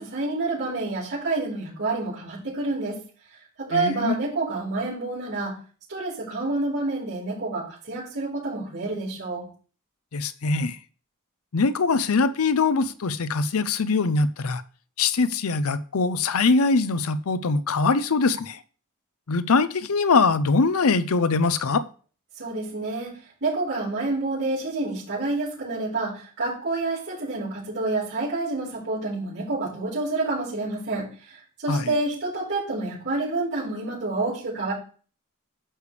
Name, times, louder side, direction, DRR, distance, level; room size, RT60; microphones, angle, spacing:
voice 1, 0.0-3.0 3.7-5.5 5.9-9.4 22.4-23.1 23.4-31.1 31.6-34.7, right 2 dB, 55° right, 4.4 m, -28 dB
voice 2, 3.7-4.1 10.1-10.8 11.5-14.6 15.0-18.6 19.3-21.8 31.7-31.9, left 4 dB, 70° left, 0.6 m, -22 dB
10.0 x 6.6 x 3.3 m
head